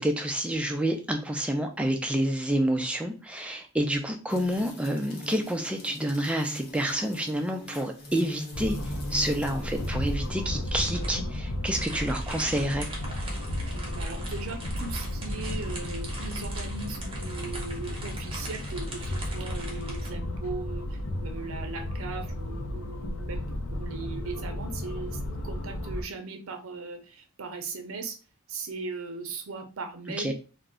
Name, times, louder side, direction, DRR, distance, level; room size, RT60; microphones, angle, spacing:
voice 1, 0.0-12.9 30.2-30.3, right 1 dB, 5° right, 4 dB, 0.3 m, -28 dB
sound 1, 4.3-10.7, equal, 50° left, 0.9 m, -42 dB
sound 2, 8.5-26.0, left 1 dB, 80° left, 0.5 m, -34 dB
sound 3, 9.6-20.1, right 1 dB, 25° right, 0.8 m, -42 dB
voice 2, 13.7-28.2 28.5-30.3, right 3 dB, 70° right, 6 dB, 0.6 m, -38 dB
2.4 x 2.1 x 3.6 m, 0.34 s
head